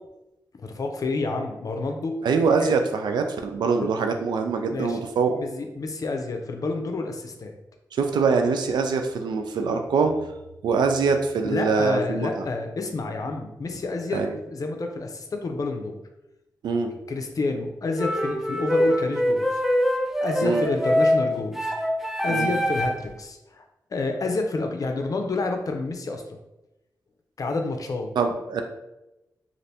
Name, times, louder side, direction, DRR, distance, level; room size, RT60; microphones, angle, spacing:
voice 1, 0.6-2.2 2.6-2.7 3.8-3.9 4.7-5.0 5.4-7.5 11.4-16.0 17.1-19.6 20.2-21.7 22.2-23.7 23.9-26.2 27.4-28.1, left 3 dB, 55° left, 4 dB, 0.5 m, -29 dB
voice 2, 2.2-5.4 7.9-10.1 10.6-12.4 14.1-14.3 16.6-16.9 20.4-20.6 22.3-22.5 28.2-28.6, right 5 dB, 85° right, 5 dB, 0.3 m, -24 dB
sound 1, 18.0-23.1, equal, 5° right, 0.5 m, -24 dB
2.7 x 2.5 x 3.3 m, 0.94 s
cardioid pair, 50°, 7 cm